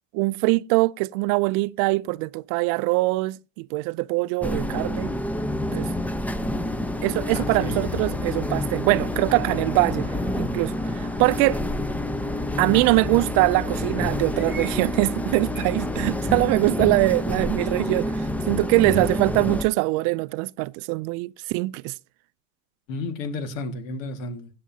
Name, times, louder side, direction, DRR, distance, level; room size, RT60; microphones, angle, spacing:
voice 1, 0.1-5.1 5.7-5.9 7.0-10.1 10.4-11.6 12.6-21.9, right 23 dB, 55° right, 0.5 m, -23 dB
sound 1, 4.4-19.7, left 1 dB, 5° left, 0.6 m, -28 dB
voice 2, 7.3-7.8 18.8-19.2 22.9-24.5, left 2 dB, 75° left, 1.9 m, -32 dB
sound 2, 9.2-13.0 14.3-14.8 15.5-15.7, right 2 dB, 25° left, 3.3 m, -47 dB
16.5 x 8.5 x 2.8 m
supercardioid pair, 110°, 39 cm